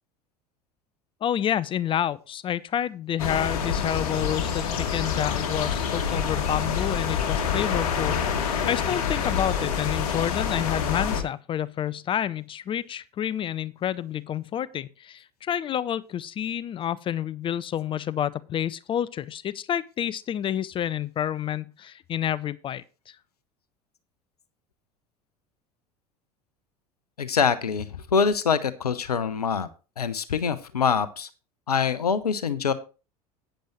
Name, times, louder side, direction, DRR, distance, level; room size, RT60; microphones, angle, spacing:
voice 1, 1.2-23.2, left 10 dB, 25° left, 0.4 m, -29 dB
sound 1, 3.2-11.2, left 7 dB, 60° left, 1.6 m, -27 dB
voice 2, 27.2-29.7 30.0-31.3 31.7-32.7, left 6 dB, 80° left, 0.6 m, -24 dB
11.5 x 9.1 x 3.1 m
figure-of-eight pair, 75°, 20 cm